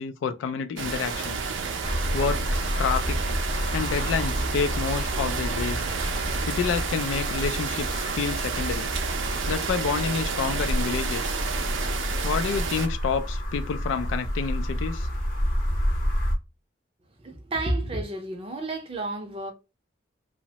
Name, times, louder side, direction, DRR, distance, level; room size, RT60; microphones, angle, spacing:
voice 1, 0.0-1.6 2.1-3.2 3.7-5.8 6.4-8.9 9.5-11.4 12.2-15.1, left 6 dB, 85° left, 0.3 m, -29 dB
sound 1, 0.8-12.9, right 5 dB, 85° right, 0.5 m, -30 dB
sound 2, 1.8-16.4, equal, 50° left, 0.8 m, -30 dB
voice 2, 17.2-19.5, right 2 dB, 30° right, 0.5 m, -30 dB
2.9 x 2.0 x 2.7 m
head